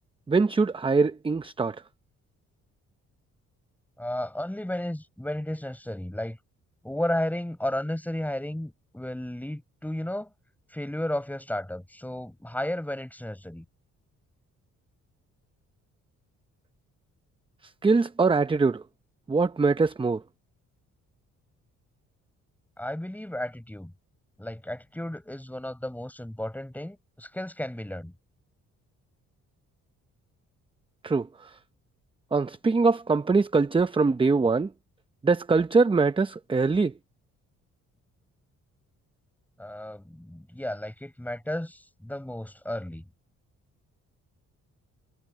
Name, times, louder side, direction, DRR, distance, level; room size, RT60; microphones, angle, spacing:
voice 1, 0.3-1.8 17.8-18.8 19.3-20.2 31.0-31.6 32.3-34.7 35.2-36.9, right 4 dB, 15° right, 0.7 m, -23 dB
voice 2, 4.0-6.4 6.8-10.3 10.7-13.6 22.8-23.9 24.4-28.1 39.6-43.0, left 1 dB, 5° left, 5.4 m, -33 dB
cardioid pair, 90°, 30 cm